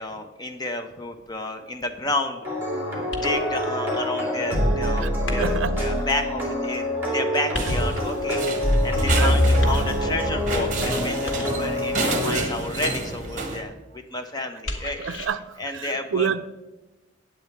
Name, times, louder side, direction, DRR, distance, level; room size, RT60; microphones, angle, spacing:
voice 1, 0.0-2.5 3.2-6.9 7.1-8.4 8.8-15.0 15.6-16.3, left 2 dB, 20° left, 6 dB, 0.7 m, -30 dB
sound 1, 2.4-12.4, left 1 dB, 10° right, 2.8 m, -24 dB
sound 2, 3.1-3.6 5.2-5.8 7.5-8.2 9.6-10.2 11.2-11.8 14.6-15.3, left 1 dB, 75° left, 1.6 m, -34 dB
voice 2, 5.4-6.1 9.1-9.5 15.0-16.4, right 6 dB, 70° right, 13 dB, 0.4 m, -29 dB
sound 3, 7.6-13.6, right 3 dB, 40° right, 1.4 m, -30 dB
9.4 x 8.1 x 4.5 m, 1.0 s
head